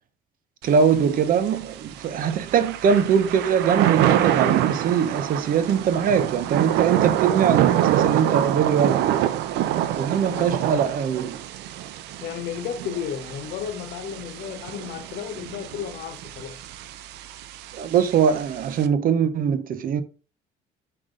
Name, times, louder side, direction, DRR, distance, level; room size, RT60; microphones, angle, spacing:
voice 1, 0.6-9.3 10.0-11.4 17.7-20.0, right 7 dB, 55° right, 0.9 m, -22 dB
Thunder / Rain, 0.6-18.9, right 12 dB, 85° right, 0.7 m, -26 dB
voice 2, 10.3-10.6 12.2-16.6, left 9 dB, 75° left, 1.3 m, -33 dB
5.9 x 5.0 x 3.9 m
cardioid pair, 110°, 17 cm